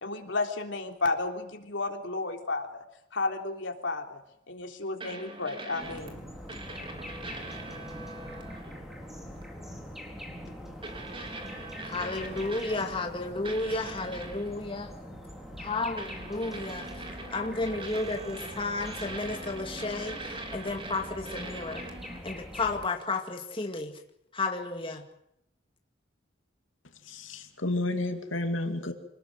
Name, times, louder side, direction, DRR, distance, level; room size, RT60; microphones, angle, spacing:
voice 1, 0.0-2.8 3.1-4.2 4.5-6.2, left 3 dB, 70° left, 4 dB, 3.5 m, -32 dB
sound 1, 5.0-6.1 6.5-8.8 9.4-9.5 10.8-13.1 13.4-14.6 16.0-22.2, right 2 dB, 25° right, 3.6 m, -42 dB
sound 2, 5.8-22.9, equal, ahead, 4.4 m, -44 dB
voice 2, 11.8-14.9 15.6-16.9 17.3-21.8 22.2-23.9 24.3-25.0, left 3 dB, 25° left, 3 dB, 2.2 m, -32 dB
voice 3, 27.1-28.9, left 2 dB, 90° left, 5 dB, 2.6 m, -31 dB
26.5 x 19.5 x 7.8 m, 0.78 s
head